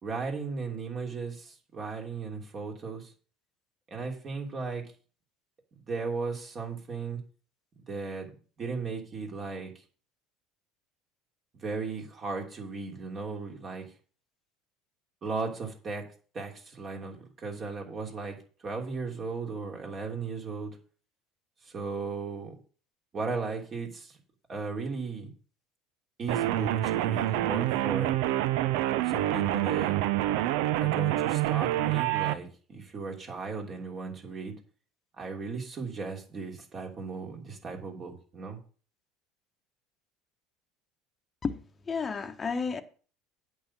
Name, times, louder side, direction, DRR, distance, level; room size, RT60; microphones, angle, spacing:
voice 1, 0.0-3.1 3.9-4.8 5.9-7.2 7.9-8.3 8.6-9.7 11.5-13.9 15.2-16.0 16.3-18.4 18.6-20.8 21.7-22.5 23.1-24.2 24.5-25.3 26.2-28.1 29.0-30.1 30.8-34.6 35.2-38.6, right 4 dB, 40° right, 3.0 m, -36 dB
sound 1, 26.3-32.3, right 14 dB, 70° right, 0.5 m, -27 dB
voice 2, 41.4-42.8, left 5 dB, 30° left, 1.0 m, -32 dB
8.6 x 5.7 x 7.3 m
hypercardioid pair, 70°, 0 cm